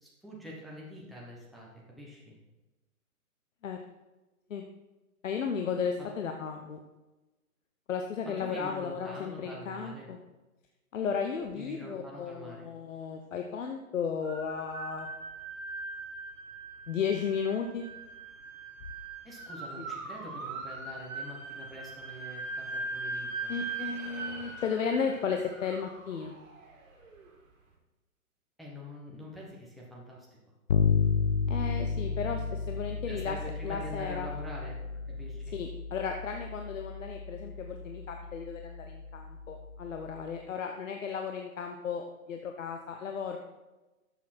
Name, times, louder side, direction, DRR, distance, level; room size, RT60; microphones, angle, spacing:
voice 1, 0.0-2.4 8.4-10.1 11.5-12.7 19.2-23.5 28.6-30.3 33.1-34.8 35.1-35.5, equal, ahead, -5 dB, 1.1 m, -45 dB
voice 2, 5.2-6.8 7.9-10.2 10.9-15.1 16.9-17.8 19.8-19.9 23.5-26.3 31.5-33.4 33.6-34.3 35.5-43.4, left 6 dB, 60° left, 4 dB, 1.1 m, -34 dB
sound 1, 14.2-27.3, right 3 dB, 65° right, 3.3 m, -41 dB
Bass guitar, 30.7-40.4, left 5 dB, 35° left, 0.5 m, -33 dB
12.5 x 7.3 x 4.3 m, 1.1 s
hypercardioid pair, 155°, 43 cm